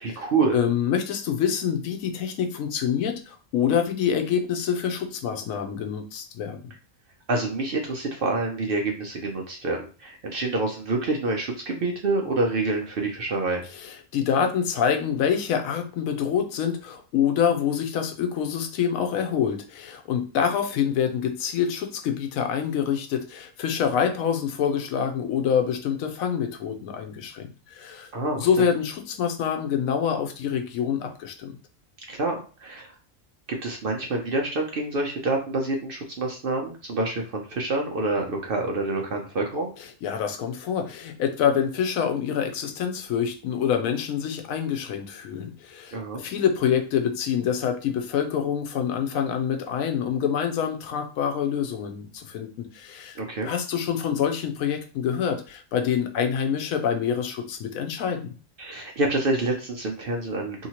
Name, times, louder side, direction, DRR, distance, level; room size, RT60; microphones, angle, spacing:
voice 1, 0.0-0.6 7.3-13.7 28.1-28.5 32.1-32.9 33.5-39.7 45.9-46.2 53.2-53.5 58.6-60.7, right 2 dB, 60° right, 1 dB, 0.6 m, -27 dB
voice 2, 0.5-6.6 13.7-28.1 28.4-31.6 40.0-53.2 53.4-58.3, left 8 dB, 85° left, 5 dB, 1.0 m, -26 dB
2.8 x 2.8 x 2.8 m, 0.37 s
omnidirectional pair, 1.4 m